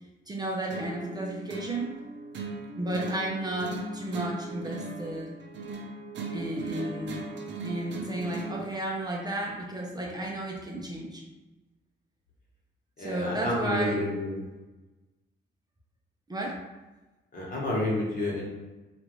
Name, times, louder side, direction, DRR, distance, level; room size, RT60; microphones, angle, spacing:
voice 1, 0.3-1.9 2.8-5.3 6.3-7.3 7.6-11.2 13.0-14.0 16.3-16.6, right 1 dB, 20° right, -2 dB, 0.6 m, -33 dB
sound 1, 0.7-8.7, right 3 dB, 65° right, 0.6 m, -38 dB
voice 2, 13.0-14.4 17.3-18.5, left 1 dB, 45° left, -4 dB, 1.2 m, -29 dB
3.0 x 2.5 x 3.0 m, 1.1 s
cardioid pair, 90°, 20 cm